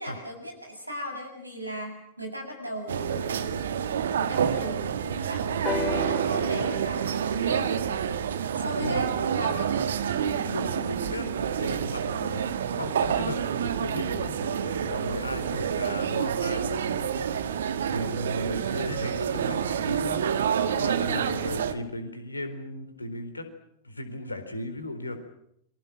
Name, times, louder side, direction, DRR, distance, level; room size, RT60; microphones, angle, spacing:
voice 1, 0.0-3.8 4.1-7.8 8.5-9.6, equal, 85° right, 5 dB, 7.4 m, -37 dB
sound 1, 2.9-21.7, right 8 dB, 65° right, 1.7 m, -28 dB
sound 2, 5.6-9.5 10.4-10.5, left 4 dB, 25° left, 4.8 m, -36 dB
voice 2, 10.4-17.1 17.3-17.5 17.9-20.5 20.7-23.4 23.8-25.2, left 1 dB, 80° left, 9 dB, 4.2 m, -36 dB
29.5 x 25.0 x 6.4 m, 0.73 s
figure-of-eight pair, 90°, 0 cm